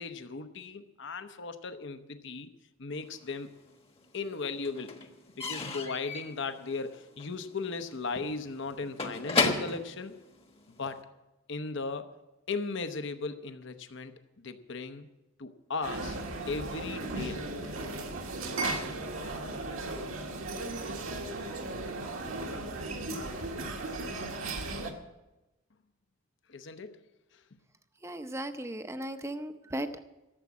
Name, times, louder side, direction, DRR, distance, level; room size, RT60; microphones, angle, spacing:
voice 1, 0.0-2.5 2.8-3.6 4.1-5.0 5.4-10.2 10.8-11.0 11.5-12.1 12.5-15.1 15.4-16.2 16.5-17.7 26.5-27.0 27.3-27.4, left 4 dB, 60° left, 9 dB, 0.9 m, -37 dB
Slam / Squeak / Wood, 3.1-4.0 4.2-11.0, left 3 dB, 30° left, 1.2 m, -34 dB
sound 1, 15.8-24.9, right 2 dB, 85° right, 1.7 m, -36 dB
voice 2, 28.0-30.0, right 1 dB, 15° right, 9 dB, 0.7 m, -36 dB
13.5 x 7.3 x 9.5 m, 1.0 s
head